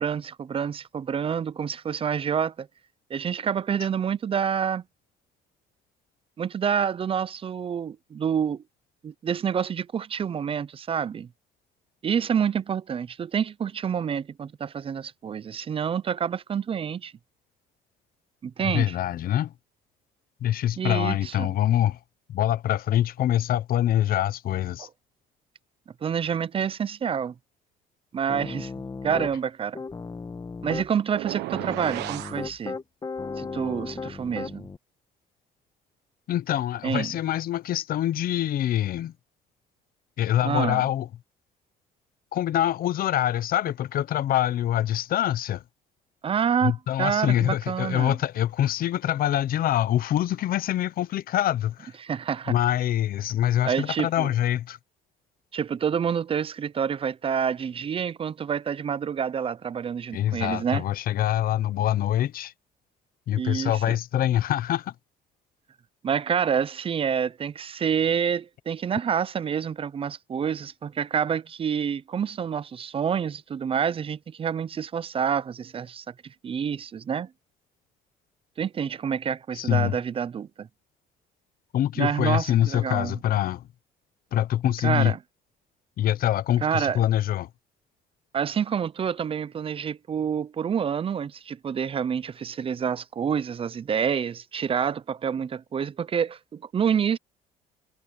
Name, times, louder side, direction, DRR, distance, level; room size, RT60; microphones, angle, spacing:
voice 1, 0.0-2.7 3.1-4.8 6.4-8.6 9.0-11.3 12.0-17.1 18.4-18.9 20.8-21.5 26.0-27.3 28.1-28.7 29.0-29.8 30.6-32.8 33.4-34.7 36.8-37.1 40.4-40.8 46.2-48.2 52.0-52.6 53.6-54.3 55.5-60.8 63.3-64.0 66.0-77.3 78.6-80.7 82.0-83.2 84.8-85.2 86.6-87.0 88.3-97.2, right 7 dB, 35° right, 0.6 m, -28 dB
voice 2, 18.6-19.5 20.4-22.0 22.3-24.9 36.3-39.1 40.2-41.1 42.3-45.6 46.6-51.9 52.5-54.8 60.1-62.5 63.3-64.9 79.5-80.0 81.7-83.7 84.3-85.1 86.0-87.5, left 12 dB, 60° left, 0.9 m, -25 dB
Piano, 28.3-29.3 29.8-30.9 31.5-34.8, left 4 dB, 25° left, 1.4 m, -35 dB
sound 1, 31.1-32.4, right 16 dB, 85° right, 1.3 m, -33 dB
cardioid pair, 110°, 17 cm